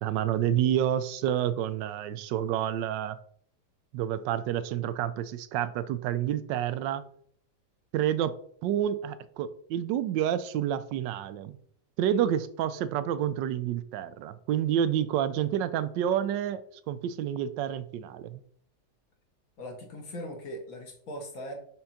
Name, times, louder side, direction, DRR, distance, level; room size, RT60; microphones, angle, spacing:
voice 1, 0.0-3.2 3.9-7.0 7.9-8.3 8.6-11.6 12.0-16.6 16.9-18.4, right 10 dB, 90° right, 13 dB, 1.3 m, -29 dB
voice 2, 19.6-21.5, equal, 55° left, 3 dB, 1.6 m, -40 dB
6.1 x 3.8 x 5.7 m, 0.63 s
omnidirectional pair, 1.9 m